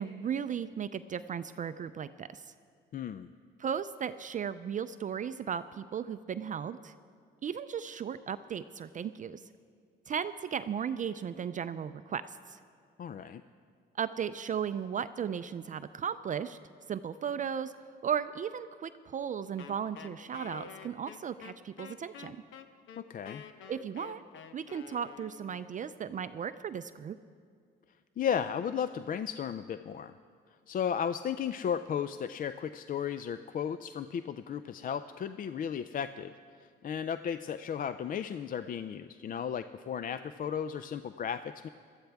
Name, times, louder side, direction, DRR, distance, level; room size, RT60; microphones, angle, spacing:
voice 1, 0.0-2.5 3.6-6.9 7.4-9.4 10.1-12.6 14.0-16.6 16.9-17.7 18.0-22.4 23.7-24.2 24.5-27.2, right 8 dB, 40° right, 12 dB, 0.4 m, -36 dB
voice 2, 2.9-3.3 13.0-13.4 23.0-23.4 28.2-30.1 30.7-36.3 36.8-41.7, left 8 dB, 45° left, 12 dB, 0.4 m, -34 dB
Wind instrument woodwind instrument, 19.6-25.7, left 8 dB, 85° left, 0.7 m, -49 dB
18.0 x 13.5 x 3.5 m, 2.2 s
cardioid pair, 90°, 20 cm